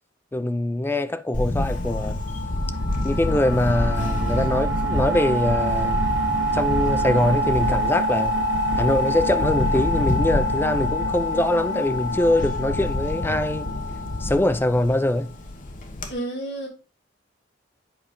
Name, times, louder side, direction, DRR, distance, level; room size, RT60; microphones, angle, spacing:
voice 1, 0.3-2.2 3.0-6.1 6.5-8.4 8.8-13.7 14.2-15.3, left 1 dB, 10° left, 0.4 m, -23 dB
Camera, 1.3-16.1, left 1 dB, 45° left, 1.1 m, -28 dB
sound 1, 1.6-15.1, equal, 75° right, 0.9 m, -27 dB
voice 2, 16.1-16.7, right 1 dB, 70° left, 2.5 m, -30 dB
7.9 x 4.9 x 3.7 m
head